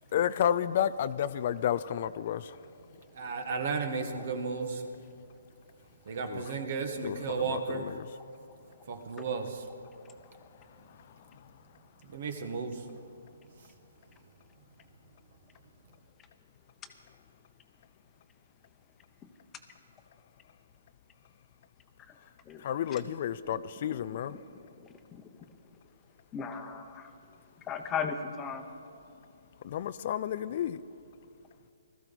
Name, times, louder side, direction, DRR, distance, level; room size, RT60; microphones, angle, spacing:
voice 1, 0.1-2.4 6.3-6.4 7.0-8.0 22.6-24.3 29.6-30.8, left 10 dB, 45° left, 15 dB, 0.4 m, -31 dB
voice 2, 3.1-4.9 6.1-7.8 8.9-9.6 12.1-12.8, right 5 dB, 55° right, 6 dB, 1.6 m, -34 dB
voice 3, 22.5-23.1 23.4-23.6 24.3-24.4 24.8-25.6 26.3-27.1 27.6-28.7, left 6 dB, 15° left, 6 dB, 1.0 m, -38 dB
20.0 x 14.0 x 4.1 m, 2.5 s
hypercardioid pair, 145°, 0 cm